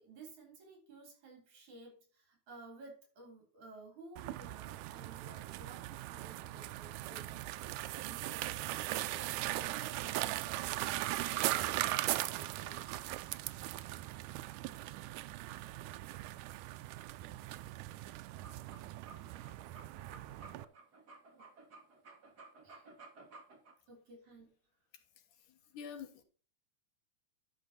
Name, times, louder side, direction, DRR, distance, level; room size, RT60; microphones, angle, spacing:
voice 1, 0.0-7.4 7.9-11.0 11.2-12.9 21.3-21.5 22.6-22.9 23.9-24.5, right 3 dB, 70° right, 4.8 m, -55 dB
sound 1, 4.2-20.7, right 16 dB, 85° right, 2.1 m, -39 dB
sound 2, 18.4-23.7, right 3 dB, 35° right, 2.7 m, -55 dB
voice 2, 24.9-26.2, left 7 dB, 85° left, 3.1 m, -49 dB
12.0 x 6.0 x 4.2 m
omnidirectional pair, 3.5 m